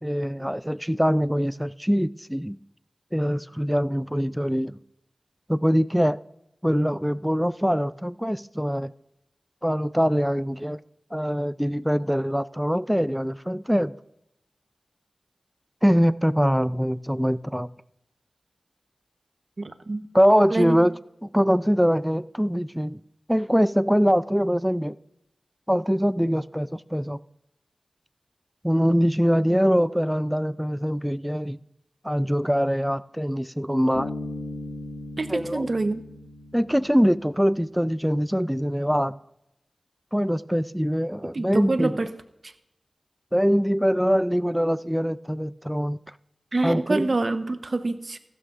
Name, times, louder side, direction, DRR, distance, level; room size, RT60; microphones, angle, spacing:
voice 1, 0.0-2.6 3.1-4.8 5.5-6.2 6.6-8.9 9.6-10.8 11.1-13.9 15.8-17.7 20.1-20.9 21.3-23.0 23.3-25.0 25.7-27.2 28.6-31.6 32.0-34.1 35.3-35.7 36.5-39.1 40.1-42.0 43.3-46.0 46.6-47.1, equal, 5° right, 0.4 m, -23 dB
voice 2, 19.6-20.0 20.5-20.8 35.2-36.0 41.3-42.1 42.4-42.5 46.5-48.2, right 2 dB, 55° right, 0.9 m, -26 dB
Bass guitar, 33.9-37.4, left 2 dB, 80° left, 2.2 m, -37 dB
15.0 x 12.5 x 2.5 m
cardioid pair, 45°, 0 cm